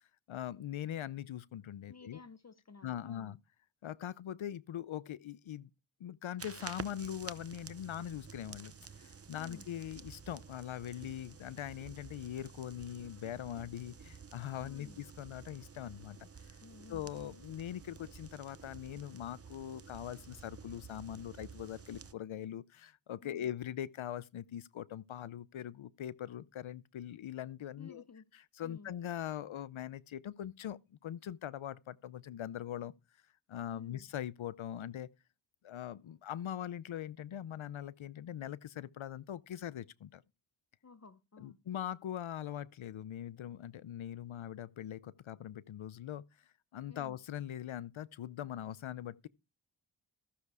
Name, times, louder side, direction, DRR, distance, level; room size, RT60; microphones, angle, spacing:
voice 1, 0.3-2.2 2.8-3.4 3.8-5.7 6.0-16.3 16.9-28.0 28.6-32.9 33.5-35.1 35.6-40.2 41.4-46.2 46.7-49.3, left 11 dB, 90° left, 0.6 m, -42 dB
voice 2, 1.9-3.4 9.4-9.7 14.6-15.0 16.6-17.1 23.2-23.5 27.8-28.4 28.6-28.9 33.7-34.1 40.8-41.6 46.9-47.2, left 4 dB, 35° left, 0.7 m, -54 dB
sound 1, 6.4-22.1, right 5 dB, 30° right, 0.7 m, -51 dB
14.5 x 6.7 x 4.8 m
wide cardioid pair, 60°, 46 cm